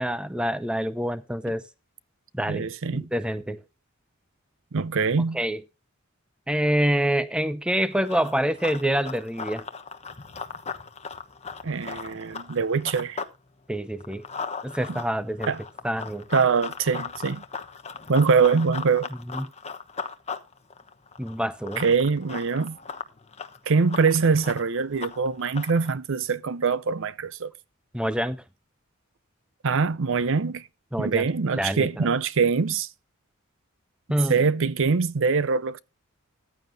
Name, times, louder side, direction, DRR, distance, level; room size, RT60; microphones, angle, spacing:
voice 1, 0.0-1.6 2.3-3.6 5.3-5.6 6.5-9.6 13.7-14.2 14.6-15.5 15.8-16.3 19.3-19.5 21.2-21.8 27.9-28.4 30.9-31.3 31.6-32.1 34.1-34.4, equal, 5° right, 0.7 m, -26 dB
voice 2, 2.5-3.1 4.7-5.4 11.6-13.2 15.5-15.6 16.3-17.4 18.1-19.1 21.8-22.8 23.7-27.5 29.6-30.6 31.0-32.9 34.3-35.8, right 5 dB, 65° right, 0.6 m, -23 dB
Run, 7.9-13.4 13.7-25.9, left 5 dB, 30° left, 1.1 m, -38 dB
14.5 x 9.4 x 2.7 m
head